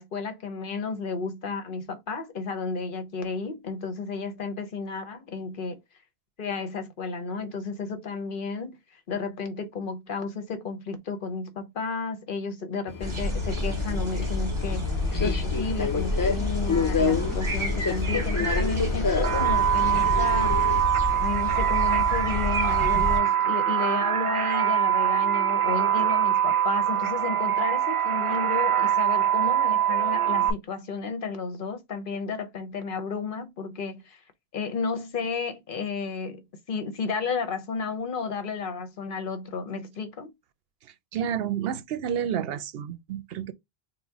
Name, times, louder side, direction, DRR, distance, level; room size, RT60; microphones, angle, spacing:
voice 1, 0.0-5.8 6.4-20.6 21.2-34.2 34.5-40.3, left 4 dB, 60° left, 0.9 m, -32 dB
Subway metro underground, 12.9-20.8, left 5 dB, 35° left, 0.3 m, -30 dB
sound 1, 13.0-23.2, left 2 dB, 30° right, 1.0 m, -29 dB
sound 2, 19.2-30.5, right 10 dB, 50° right, 0.4 m, -23 dB
voice 2, 40.8-43.5, right 9 dB, 75° right, 0.8 m, -31 dB
4.0 x 2.1 x 4.5 m
omnidirectional pair, 1.0 m